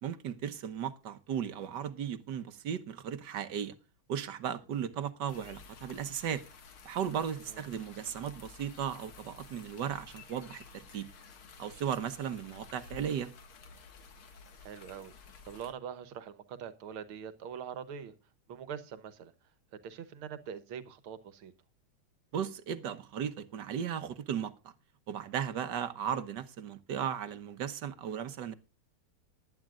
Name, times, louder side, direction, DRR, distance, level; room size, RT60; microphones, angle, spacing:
voice 1, 0.0-3.7 4.1-6.4 6.8-11.1 11.6-13.3 22.3-24.5 25.1-28.5, right 8 dB, 60° right, 1.6 m, -36 dB
sound 1, 5.3-15.7, left 5 dB, 90° left, 2.5 m, -53 dB
voice 2, 14.6-15.1 15.4-18.1 18.5-19.3 19.8-21.5, right 8 dB, 85° right, 1.9 m, -43 dB
19.0 x 11.0 x 2.4 m
omnidirectional pair, 2.3 m